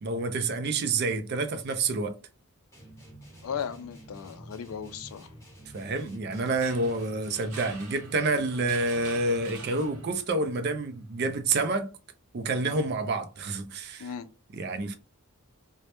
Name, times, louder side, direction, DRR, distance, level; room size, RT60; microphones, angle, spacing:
voice 1, 0.0-2.2 5.7-11.9 12.3-14.1 14.5-15.0, right 3 dB, 45° right, 0.3 m, -28 dB
sound 1, 2.7-10.2, right 1 dB, 15° left, 0.8 m, -49 dB
voice 2, 3.4-5.3 14.0-14.3, left 7 dB, 75° left, 0.3 m, -36 dB
sound 2, 6.6-10.3, right 4 dB, 90° right, 0.7 m, -46 dB
2.1 x 2.1 x 2.8 m
head